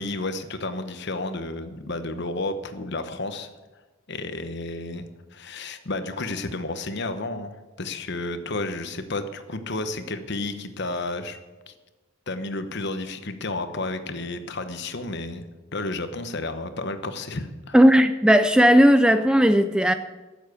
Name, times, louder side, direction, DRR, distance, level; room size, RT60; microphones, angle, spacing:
voice 1, 0.0-3.5 4.1-5.1 5.3-7.5 7.8-11.4 11.7-11.8 12.3-15.4 15.7-17.8, left 2 dB, 50° left, 9 dB, 1.0 m, -31 dB
voice 2, 17.7-19.9, equal, 5° right, 10 dB, 0.3 m, -16 dB
13.5 x 7.4 x 8.3 m, 1.2 s
head